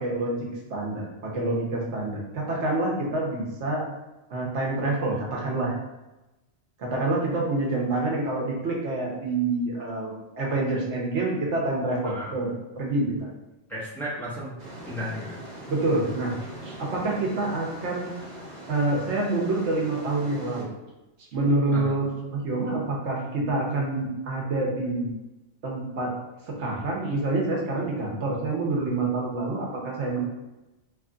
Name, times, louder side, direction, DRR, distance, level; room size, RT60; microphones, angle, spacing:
voice 1, 0.0-3.8 4.3-5.8 6.8-12.5 12.8-13.3 15.7-16.3 16.6-18.1 18.7-20.7 21.3-25.2 25.6-26.1 26.5-30.2, right 2 dB, 70° right, -2 dB, 1.1 m, -27 dB
voice 2, 12.0-12.4 13.7-14.6 14.9-15.4 21.7-22.0, equal, ahead, -9 dB, 0.9 m, -34 dB
sound 1, 14.6-20.6, right 1 dB, 45° right, 0.6 m, -42 dB
3.1 x 2.3 x 3.7 m, 1.0 s
omnidirectional pair, 1.2 m